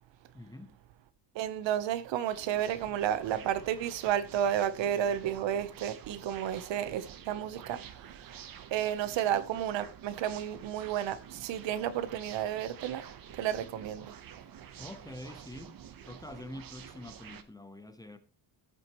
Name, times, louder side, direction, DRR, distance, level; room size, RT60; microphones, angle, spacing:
voice 1, 0.3-0.8 14.8-15.8 16.1-18.2, left 1 dB, 10° left, 0.9 m, -46 dB
voice 2, 1.3-8.4 8.7-13.1 13.3-14.2, right 10 dB, 80° right, 1.1 m, -32 dB
sound 1, 2.3-17.4, right 9 dB, 50° right, 1.1 m, -49 dB
15.5 x 7.8 x 3.1 m
cardioid pair, 150°, 44 cm